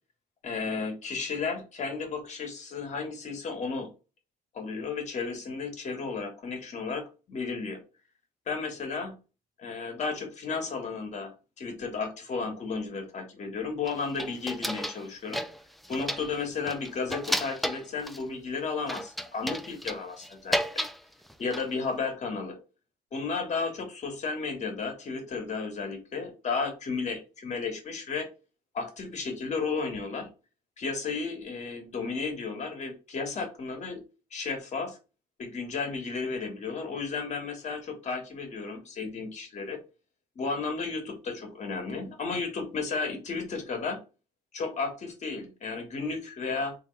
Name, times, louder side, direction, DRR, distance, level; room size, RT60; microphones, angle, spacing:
voice 1, 0.4-3.9 4.5-7.8 8.5-9.2 9.6-15.4 15.9-20.6 21.4-22.6 23.1-28.3 28.7-30.3 30.8-34.0 34.3-35.0 35.4-39.8 40.3-44.0 44.5-46.8, left 4 dB, 45° left, 5 dB, 1.3 m, -33 dB
sound 1, 13.9-15.0 15.3-16.3 16.7-18.2 18.9-21.0 21.3-21.8, equal, ahead, 0.4 m, -33 dB
3.5 x 2.9 x 3.2 m, 0.31 s
cardioid pair, 110°, 17 cm